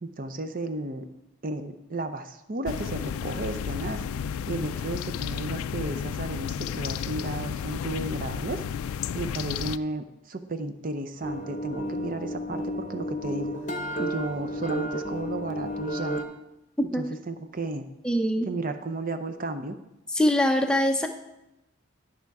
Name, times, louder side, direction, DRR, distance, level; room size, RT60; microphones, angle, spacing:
voice 1, 0.0-1.1 1.4-4.0 4.5-8.6 9.1-13.7 14.0-16.2 16.9-17.9 18.5-19.8, right 2 dB, 40° right, 9 dB, 0.6 m, -33 dB
sound 1, 2.7-9.8, left 8 dB, 85° left, 0.3 m, -32 dB
sound 2, 11.2-16.2, equal, 35° left, 0.8 m, -32 dB
voice 2, 18.0-18.5 20.1-21.1, left 1 dB, 5° left, 5 dB, 0.6 m, -23 dB
11.5 x 5.8 x 4.7 m, 0.94 s
head